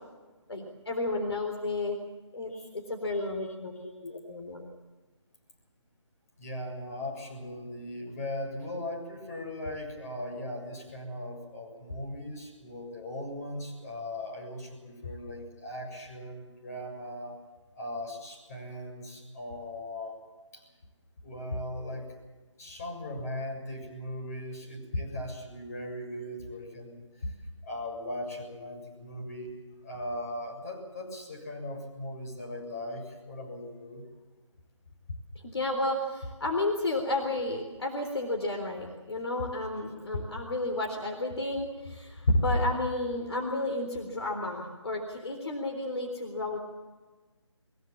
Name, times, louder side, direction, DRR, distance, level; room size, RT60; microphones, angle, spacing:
voice 1, 0.5-2.0 2.3-4.7 24.9-25.0 27.2-27.3 35.4-46.6, left 2 dB, 55° left, 3 dB, 3.8 m, -31 dB
voice 2, 6.4-17.3 17.8-20.2 20.5-20.6 21.2-22.1 22.6-27.3 27.6-29.5 29.8-34.0, left 1 dB, 30° left, 1 dB, 7.1 m, -39 dB
22.5 x 22.0 x 7.4 m, 1.3 s
figure-of-eight pair, 155°, 16 cm